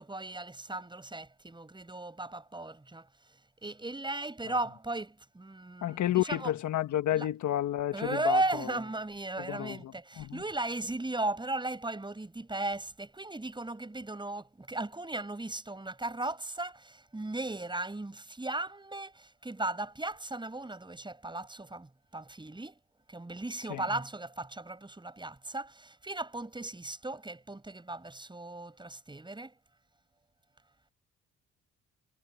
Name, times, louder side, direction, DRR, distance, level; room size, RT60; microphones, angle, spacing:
voice 1, 0.0-3.1 3.6-6.5 7.1-7.3 7.9-22.7 23.1-29.5, right 2 dB, 15° right, 7.0 m, -36 dB
voice 2, 5.8-8.7 9.5-9.9 10.2-10.4 23.7-23.8, left 13 dB, 75° left, 1.5 m, -30 dB
cardioid pair, 90°, 30 cm